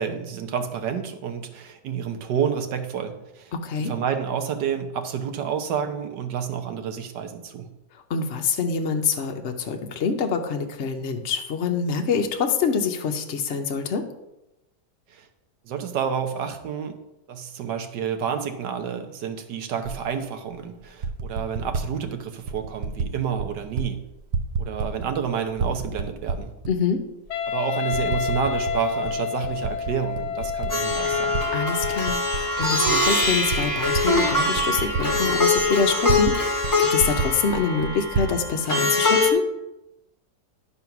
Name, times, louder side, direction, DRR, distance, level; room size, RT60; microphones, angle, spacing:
voice 1, 0.0-3.5 3.8-7.7 15.1-15.3 15.6-17.0 17.3-24.0 24.6-26.5 27.5-31.4, right 7 dB, 85° right, 6 dB, 1.6 m, -29 dB
voice 2, 3.5-3.9 8.1-14.1 26.7-27.0 31.5-39.4, left 5 dB, 55° left, 4 dB, 0.8 m, -25 dB
Typing, 19.8-20.0 20.8-21.9 22.5-23.1 23.4-23.9 24.1-25.2 25.5-26.7 27.3-27.4 27.9-28.8 29.1-31.4 31.8-36.4 36.6-36.7 37.0-38.3, right 4 dB, 55° right, 0.7 m, -29 dB
Wind instrument woodwind instrument, 27.3-32.3, left 7 dB, 75° left, 1.2 m, -29 dB
Plucked string instrument, 30.7-39.3, left 2 dB, 10° left, 1.2 m, -23 dB
11.0 x 4.2 x 5.9 m, 0.92 s
omnidirectional pair, 1.8 m